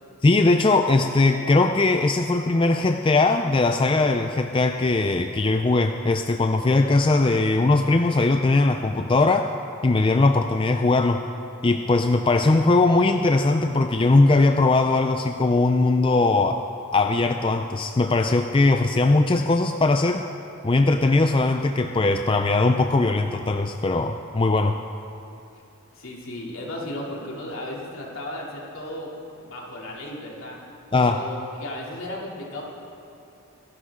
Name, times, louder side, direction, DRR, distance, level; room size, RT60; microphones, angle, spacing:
voice 1, 0.2-9.5 9.8-11.2 11.6-16.6 16.9-20.2 20.6-24.8 30.9-31.2, left 2 dB, 25° left, 6 dB, 0.4 m, -20 dB
voice 2, 25.9-30.6 30.9-32.6, left 1 dB, 65° left, -3 dB, 3.0 m, -35 dB
24.5 x 11.5 x 3.7 m, 2.7 s
head